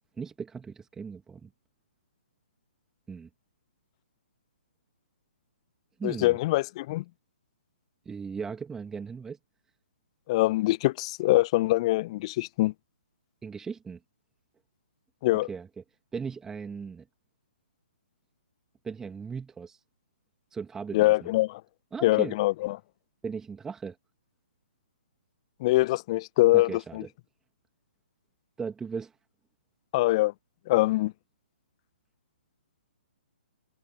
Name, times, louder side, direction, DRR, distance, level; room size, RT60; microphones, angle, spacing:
voice 1, 0.2-1.5 3.1-3.3 6.0-6.4 8.1-9.4 13.4-14.0 15.5-15.8 16.1-17.0 18.8-19.8 20.5-21.3 21.9-22.4 23.2-24.0 26.5-27.1 28.6-29.1, right 5 dB, 10° right, 2.4 m, -37 dB
voice 2, 6.0-7.0 10.3-12.7 15.2-15.5 20.9-21.6 22.0-22.8 25.6-27.0 29.9-30.3 30.7-31.1, left 18 dB, 30° left, 0.8 m, -24 dB
figure-of-eight pair, 125°, 6 cm